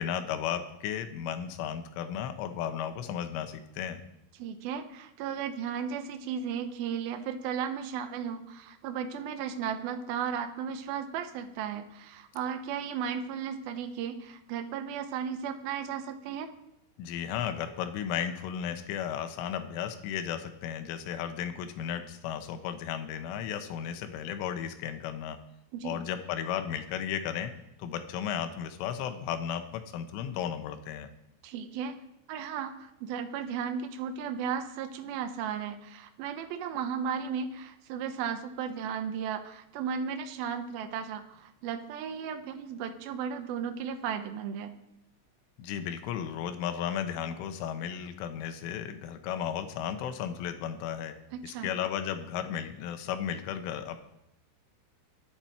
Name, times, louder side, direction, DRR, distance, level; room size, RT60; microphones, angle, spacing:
voice 1, 0.0-4.0 17.0-25.4 25.8-27.5 27.8-31.1 45.6-51.2 51.4-54.0, left 9 dB, 85° left, 8 dB, 3.6 m, -34 dB
voice 2, 4.4-16.5 25.7-26.0 31.4-32.0 32.3-44.8 51.3-51.7, right 7 dB, 80° right, 7 dB, 2.2 m, -35 dB
23.0 x 8.9 x 4.4 m, 0.83 s
omnidirectional pair, 5.6 m